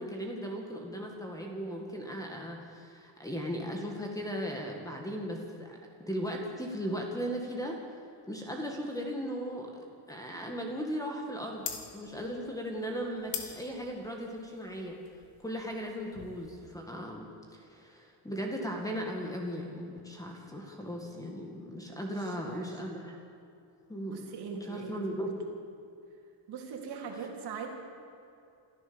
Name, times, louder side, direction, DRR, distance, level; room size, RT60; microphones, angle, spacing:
voice 1, 0.0-5.8 6.1-7.8 8.3-9.7 10.1-11.7 11.9-15.0 15.4-23.2 23.9-24.3 24.6-25.7, equal, 5° left, 1 dB, 2.0 m, -37 dB
sound 1, 11.6-16.7, left 8 dB, 60° left, 2.4 m, -43 dB
voice 2, 21.9-22.8 24.1-25.0 26.5-27.7, right 6 dB, 55° right, 0 dB, 3.8 m, -41 dB
27.5 x 14.0 x 7.1 m, 2.6 s
cardioid pair, 170°, 46 cm